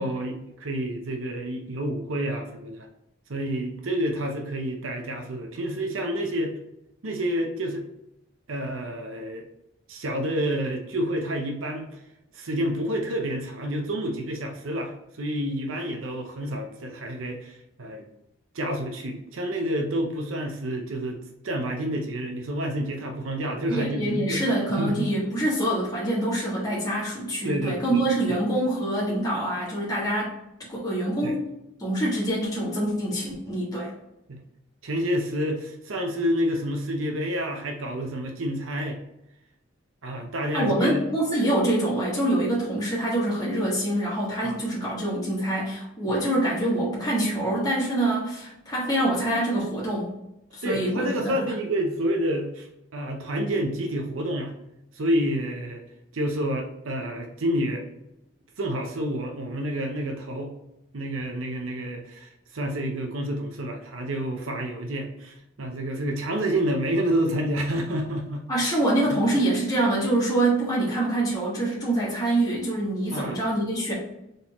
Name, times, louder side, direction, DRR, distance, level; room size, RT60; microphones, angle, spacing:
voice 1, 0.0-2.9 3.3-6.5 7.0-7.9 8.5-9.4 9.9-11.9 12.3-14.9 15.2-18.0 18.5-21.2 21.4-24.4 24.7-25.1 27.4-28.0 31.2-31.4 34.3-34.4 34.8-39.0 40.0-41.0 44.4-44.6 50.6-52.7 52.9-54.5 54.9-55.8 56.1-57.8 58.6-60.5 60.9-68.5 69.1-69.2 73.1-73.4, equal, 75° right, 3 dB, 0.7 m, -29 dB
voice 2, 23.7-30.3 30.7-31.5 31.8-33.9 40.5-50.1 50.5-51.4 68.5-73.9, right 1 dB, 20° left, -7 dB, 1.5 m, -25 dB
3.9 x 3.9 x 2.9 m, 0.86 s
head